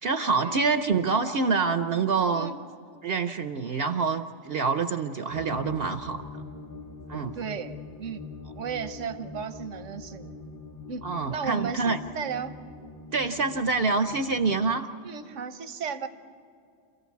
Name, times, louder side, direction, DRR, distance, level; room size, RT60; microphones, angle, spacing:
voice 1, 0.0-2.5 3.0-6.2 7.1-7.3 11.0-12.0 13.1-14.9, right 4 dB, 60° right, 9 dB, 0.9 m, -26 dB
sound 1, 5.3-14.8, left 4 dB, 15° left, 0.9 m, -43 dB
voice 2, 7.3-7.7 8.0-8.3 8.6-10.4 10.9-12.5 13.1-13.2 15.0-16.1, right 7 dB, 85° right, 10 dB, 1.4 m, -34 dB
28.0 x 15.0 x 8.3 m, 2.5 s
omnidirectional pair, 1.2 m